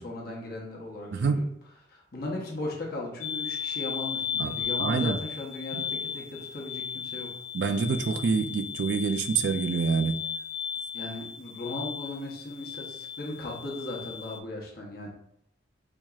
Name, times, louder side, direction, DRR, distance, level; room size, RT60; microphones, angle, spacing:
voice 1, 0.0-1.4 1.9-7.3 10.9-15.1, left 2 dB, 50° left, -2 dB, 0.9 m, -37 dB
voice 2, 1.1-1.6 4.4-5.2 5.7-5.8 7.5-10.2, right 5 dB, 65° right, 9 dB, 0.3 m, -27 dB
sound 1, 3.2-14.4, left 7 dB, 90° left, 0.4 m, -35 dB
4.5 x 2.8 x 2.3 m, 0.73 s
head